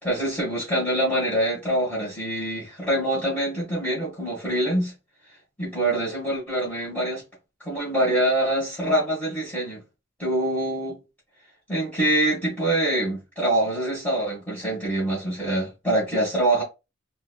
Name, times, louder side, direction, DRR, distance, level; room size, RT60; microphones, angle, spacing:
voice 1, 0.0-4.9 5.6-7.2 7.6-9.8 10.2-11.0 11.7-16.6, right 1 dB, 10° left, 1.4 m, -25 dB
4.0 x 2.6 x 2.2 m
head